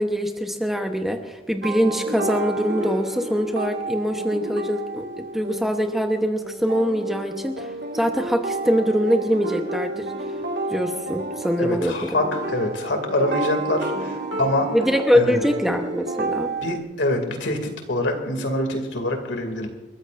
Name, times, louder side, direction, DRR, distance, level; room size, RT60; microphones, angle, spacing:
voice 1, 0.0-7.7 7.9-10.1 10.7-12.2 14.7-16.5, equal, ahead, 4 dB, 0.9 m, -23 dB
sound 1, 1.6-16.8, right 2 dB, 70° right, 1.9 m, -31 dB
voice 2, 11.6-14.7 15.1-15.4 16.6-19.7, left 1 dB, 75° left, 4 dB, 2.5 m, -25 dB
29.5 x 14.5 x 2.6 m, 1.1 s
head